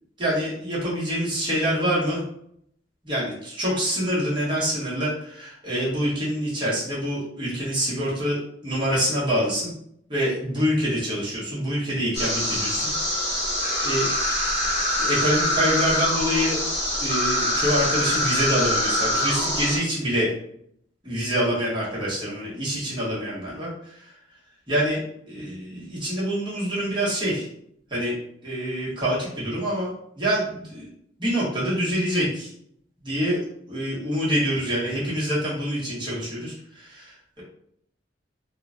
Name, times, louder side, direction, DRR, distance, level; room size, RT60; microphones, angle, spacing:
voice 1, 0.2-2.2 3.0-9.7 10.1-12.9 13.8-14.1 15.0-16.6 17.0-20.3 21.0-24.0 24.7-25.0 25.3-27.5 27.9-28.1 28.4-30.9 31.2-32.5 33.0-37.4, equal, 25° right, -8 dB, 1.2 m, -26 dB
sound 1, 12.1-19.8, left 1 dB, 35° left, 0.9 m, -24 dB
3.0 x 2.2 x 2.6 m, 0.72 s
head